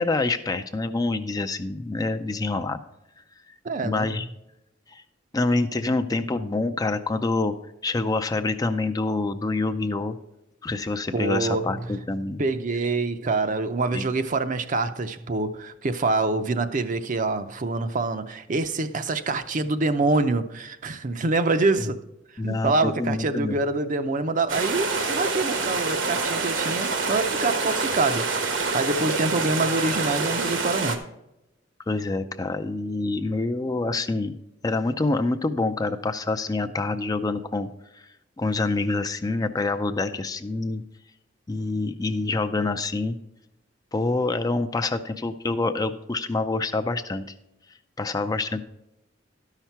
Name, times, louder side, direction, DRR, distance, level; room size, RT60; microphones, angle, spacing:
voice 1, 0.0-2.8 3.8-4.3 4.9-5.0 5.3-7.5 7.8-10.2 10.6-12.4 13.9-14.0 22.4-23.6 31.9-34.4 34.6-37.7 37.9-38.0 38.4-40.8 41.5-43.2 43.9-47.2 48.0-48.6, left 3 dB, 20° left, 0.4 m, -26 dB
voice 2, 3.6-4.1 11.1-11.8 12.4-22.0 22.4-31.0, right 3 dB, 40° right, 0.5 m, -26 dB
sound 1, 24.5-31.0, right 4 dB, 75° right, 1.1 m, -26 dB
12.5 x 5.8 x 4.5 m
head